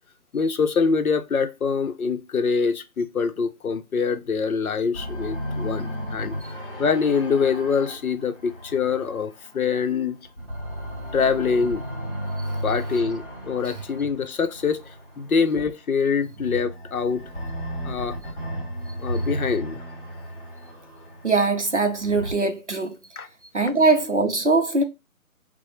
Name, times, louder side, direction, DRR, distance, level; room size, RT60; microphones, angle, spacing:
voice 1, 0.3-6.3 6.8-10.2 11.1-11.8 12.6-17.2 17.8-18.2 19.0-19.8 23.2-23.3, left 5 dB, 70° left, 0.6 m, -24 dB
sound 1, 4.9-9.9 10.3-15.6 16.3-22.3, equal, 35° left, 1.3 m, -34 dB
voice 2, 21.2-23.0 23.5-24.8, right 3 dB, 55° right, 0.5 m, -21 dB
4.7 x 2.0 x 3.0 m
figure-of-eight pair, 180°, 46 cm